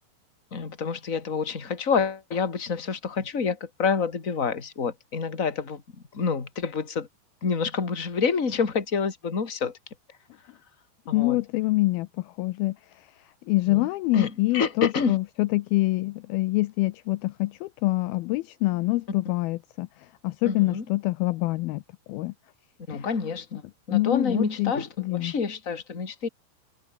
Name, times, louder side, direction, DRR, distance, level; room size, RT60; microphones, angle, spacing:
voice 1, 0.5-5.8 6.1-7.1 7.4-9.8 11.1-11.4 13.6-15.2 20.4-20.8 22.9-23.5 23.9-26.3, left 5 dB, 20° left, 2.5 m, -28 dB
voice 2, 11.1-13.1 13.5-21.8 22.1-22.3 22.9-23.1 23.9-24.7 25.0-25.3, left 20 dB, 85° left, 2.2 m, -26 dB
omnidirectional pair, 5.0 m